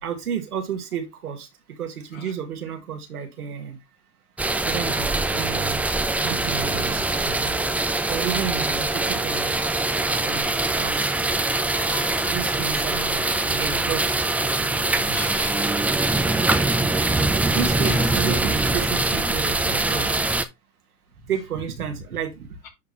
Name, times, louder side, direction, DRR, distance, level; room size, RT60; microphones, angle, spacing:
voice 1, 0.0-3.8 4.6-7.6 8.1-9.5 10.0-10.5 10.8-11.1 12.3-14.2 14.6-14.7 15.1-15.2 17.5-20.2 21.3-22.5, right 8 dB, 85° right, 1.9 m, -32 dB
sound 1, 4.4-20.4, right 2 dB, 5° right, 0.4 m, -23 dB
voice 2, 11.7-12.4 15.1-15.7 16.7-16.8 17.9-18.2 22.6-22.7, left 7 dB, 60° left, 2.9 m, -39 dB
10.5 x 3.9 x 3.0 m
hypercardioid pair, 95°, 44 cm